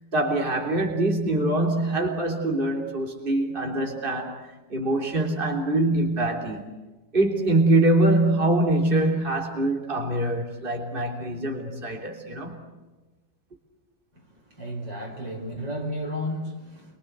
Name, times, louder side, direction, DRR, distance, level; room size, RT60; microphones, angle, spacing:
voice 1, 0.1-6.7 7.1-12.6, right 1 dB, 30° right, 2 dB, 3.6 m, -24 dB
voice 2, 14.1-17.0, equal, 80° right, 2 dB, 5.8 m, -33 dB
28.0 x 24.5 x 8.1 m, 1.2 s
omnidirectional pair, 1.9 m